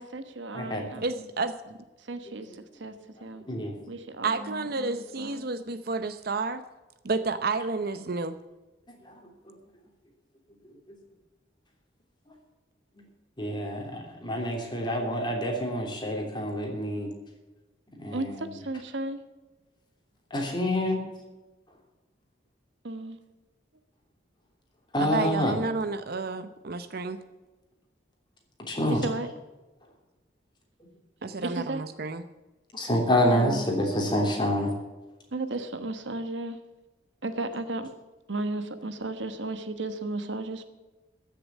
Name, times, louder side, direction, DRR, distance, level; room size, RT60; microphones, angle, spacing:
voice 1, 0.0-1.3 2.0-2.9 3.2-3.5 3.9-5.5 18.1-19.2 22.8-23.2 28.9-29.3 31.4-31.8 33.3-33.6 35.3-36.6 37.2-37.9 38.3-40.6, right 2 dB, 70° right, 9 dB, 1.2 m, -34 dB
voice 2, 1.0-1.8 4.2-6.6 7.0-8.4 25.0-27.2 31.2-32.2, right 3 dB, 55° right, 11 dB, 0.7 m, -30 dB
voice 3, 13.4-17.1 18.0-18.5 20.3-21.0 24.9-25.6 28.7-29.0 32.7-34.7, left 1 dB, 25° left, 1 dB, 3.2 m, -27 dB
14.5 x 6.9 x 8.3 m, 1.1 s
head